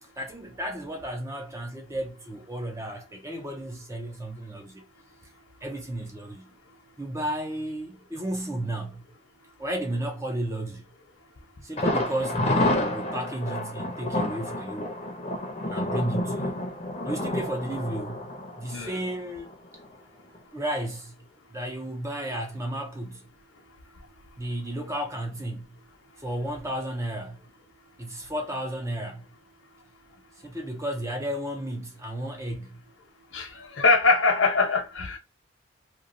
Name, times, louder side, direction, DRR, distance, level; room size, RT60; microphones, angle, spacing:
voice 1, 0.2-4.9 5.6-6.5 7.0-9.0 9.6-10.8 11.6-14.9 15.7-16.7 17.1-18.2 18.6-19.5 20.5-21.1 21.5-23.3 24.4-25.8 26.2-27.4 28.0-29.3 30.4-32.8, right 1 dB, 15° right, 0.5 m, -33 dB
Thunder, 11.8-19.5 19.8-19.9 20.3-20.4, left 1 dB, 30° left, 0.6 m, -29 dB
voice 2, 18.7-19.0 33.3-35.2, left 3 dB, 70° left, 0.8 m, -23 dB
3.0 x 2.3 x 2.6 m
head